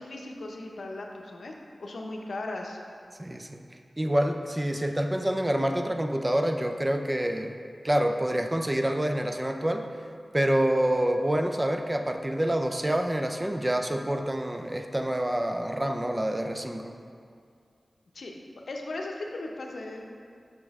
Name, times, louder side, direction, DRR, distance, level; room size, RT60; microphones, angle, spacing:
voice 1, 0.0-1.5 1.8-2.8 18.1-18.3 18.7-20.1, left 2 dB, 90° left, 1 dB, 0.6 m, -37 dB
voice 2, 3.2-3.6 4.0-7.6 7.8-9.9 10.3-16.9, right 1 dB, 20° right, 4 dB, 0.4 m, -27 dB
6.0 x 5.3 x 3.5 m, 2.3 s
wide cardioid pair, 70°, 0 cm